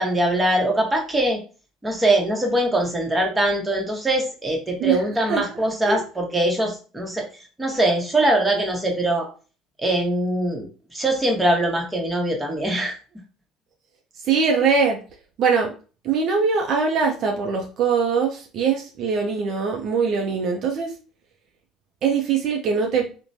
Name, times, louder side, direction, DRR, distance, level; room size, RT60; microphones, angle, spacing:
voice 1, 0.0-1.4 1.8-7.3 7.6-9.3 9.8-13.0, right 1 dB, 15° right, 1 dB, 0.9 m, -22 dB
voice 2, 14.2-15.0 15.4-15.7 16.0-20.9 22.0-23.1, right 5 dB, 55° right, 2 dB, 0.5 m, -22 dB
3.0 x 2.1 x 2.6 m, 0.36 s
hypercardioid pair, 75°, 0 cm